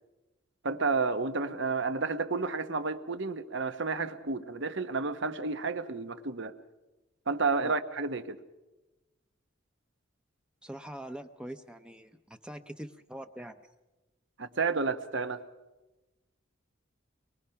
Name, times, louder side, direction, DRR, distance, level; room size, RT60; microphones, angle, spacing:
voice 1, 0.6-6.6 7.3-8.4 14.4-15.4, right 4 dB, 60° right, 1.2 m, -31 dB
voice 2, 10.6-13.6, right 1 dB, 5° right, 0.7 m, -43 dB
24.0 x 22.5 x 5.8 m
head